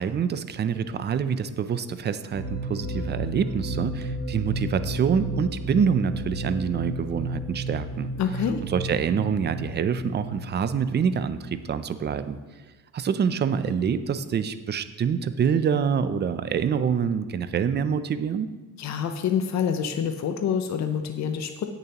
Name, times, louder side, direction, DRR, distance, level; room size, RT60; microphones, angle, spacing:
voice 1, 0.0-8.1 8.6-12.4 12.9-18.5, right 7 dB, 30° right, 12 dB, 0.4 m, -26 dB
sound 1, 2.3-12.0, right 1 dB, 25° left, 1.9 m, -33 dB
voice 2, 8.2-8.6 18.8-21.6, left 7 dB, 50° left, 6 dB, 0.6 m, -27 dB
17.5 x 6.8 x 2.9 m, 1.4 s
cardioid pair, 170°, 35 cm